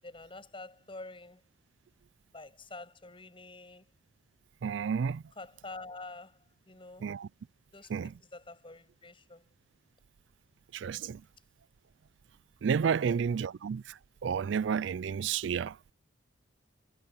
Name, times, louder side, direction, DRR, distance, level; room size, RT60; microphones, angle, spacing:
voice 1, 0.0-1.4 2.3-3.8 5.4-6.4 6.7-7.1 7.7-9.4 13.0-13.3, left 2 dB, 25° left, 7.8 m, -47 dB
voice 2, 4.6-5.2 7.0-7.3 7.9-8.1 10.7-11.2 12.6-13.8 14.2-15.8, right 6 dB, 65° right, 0.4 m, -30 dB
head